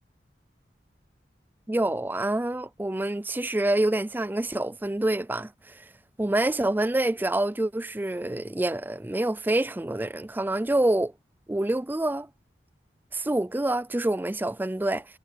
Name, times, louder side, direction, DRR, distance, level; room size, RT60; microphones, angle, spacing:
voice 1, 1.7-5.8 6.2-11.1 11.5-12.3 13.1-15.1, right 1 dB, 10° right, 0.4 m, -27 dB
head